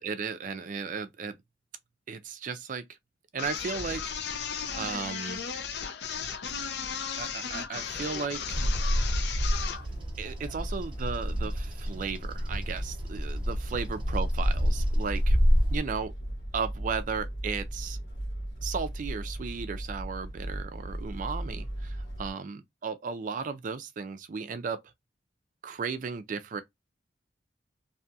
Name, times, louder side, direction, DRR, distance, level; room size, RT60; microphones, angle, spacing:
voice 1, 0.0-1.4 2.1-2.8 3.3-4.0 4.7-5.4 7.2-8.6 10.2-15.4 15.7-16.1 16.5-18.0 18.6-24.8 25.6-26.6, right 5 dB, 45° right, 0.4 m, -35 dB
sound 1, 3.4-9.9, left 6 dB, 65° left, 0.5 m, -35 dB
Bird vocalization bird call bird song, 8.5-15.8, equal, 25° right, 0.8 m, -28 dB
sound 2, 9.8-22.3, right 1 dB, 80° left, 1.5 m, -38 dB
2.7 x 2.3 x 2.6 m
head